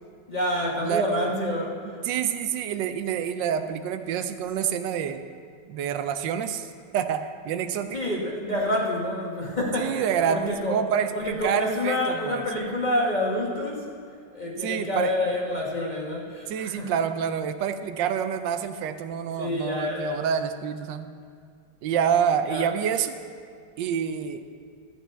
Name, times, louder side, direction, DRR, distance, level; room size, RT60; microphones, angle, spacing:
voice 1, 0.3-1.7 7.9-10.8 11.1-13.9 14.3-16.9 19.4-20.2 22.5-22.7, left 1 dB, 30° left, -3 dB, 1.2 m, -28 dB
voice 2, 0.8-1.4 2.0-5.2 5.7-8.1 9.8-12.5 14.6-15.1 16.5-21.1 21.8-23.2 23.8-24.4, right 8 dB, 85° right, 10 dB, 1.3 m, -27 dB
12.5 x 8.3 x 4.5 m, 2.3 s
omnidirectional pair, 1.9 m